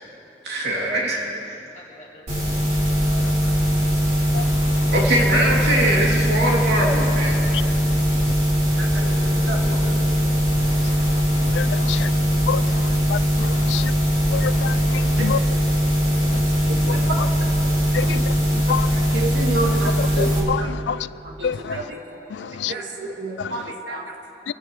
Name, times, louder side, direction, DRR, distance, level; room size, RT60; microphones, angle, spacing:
voice 1, 0.4-1.2 4.9-7.4, right 1 dB, 70° right, 2.6 m, -22 dB
voice 2, 1.9-2.2 3.1-3.6 8.9-10.1 11.9-12.2 15.2-15.3 16.2-16.4, equal, 40° left, 1.5 m, -41 dB
sound 1, 2.3-20.4, equal, 45° right, 3.5 m, -20 dB
voice 3, 11.5-12.1 12.5-12.6 13.1-13.9 14.3-15.4 16.9-17.0 17.9-18.2 18.7-18.9 20.0-21.0 21.4-21.8 22.4-22.7 23.4-23.6 24.5-24.6, left 7 dB, 80° left, 0.3 m, -27 dB
voice 4, 19.1-20.7 21.4-22.0 22.7-24.0, right 2 dB, 90° right, 1.7 m, -29 dB
23.5 x 16.5 x 3.1 m
head